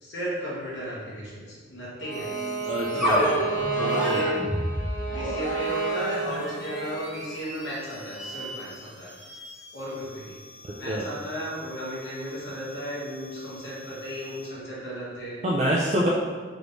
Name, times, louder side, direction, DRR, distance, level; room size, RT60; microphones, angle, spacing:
voice 1, 0.0-2.5 2.9-4.4 5.1-9.1 9.7-10.4 10.8-15.4, equal, 65° left, -6 dB, 1.0 m, -35 dB
Bowed string instrument, 2.0-7.0, right 4 dB, 40° left, 0.6 m, -30 dB
sound 1, 2.1-14.6, equal, ahead, 0.8 m, -33 dB
voice 2, 2.6-3.2 3.8-4.3 10.6-11.0 15.4-16.1, equal, 35° right, -4 dB, 0.3 m, -26 dB
3.6 x 3.0 x 2.5 m, 1.5 s
head